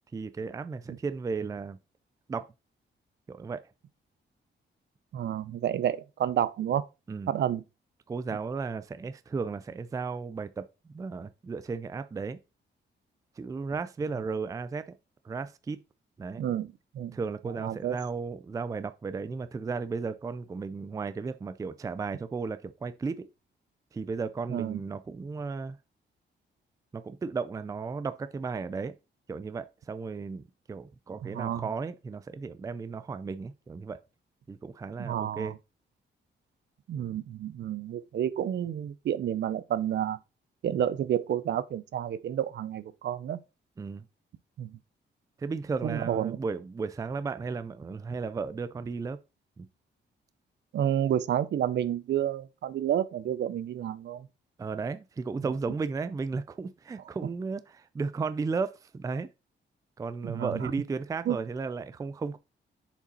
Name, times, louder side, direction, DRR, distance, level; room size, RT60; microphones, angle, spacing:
voice 1, 0.1-1.8 2.3-2.5 3.3-3.7 7.1-7.3 8.1-12.4 13.4-14.9 15.2-15.8 16.2-16.4 17.1-23.3 23.9-25.8 26.9-28.9 29.3-34.0 34.5-35.5 43.8-44.1 45.4-49.2 49.6-49.7 54.6-59.3 60.0-62.4, right 4 dB, 15° right, 0.3 m, -34 dB
voice 2, 5.1-6.8 7.3-7.6 16.4-17.2 17.6-17.9 24.5-24.8 31.2-31.6 35.0-35.5 36.9-40.2 40.6-43.4 44.6-44.8 45.8-46.4 50.7-54.3 60.2-60.6 61.3-61.4, right 10 dB, 65° right, 0.6 m, -30 dB
6.8 x 5.0 x 4.1 m
wide cardioid pair, 175°, 19 cm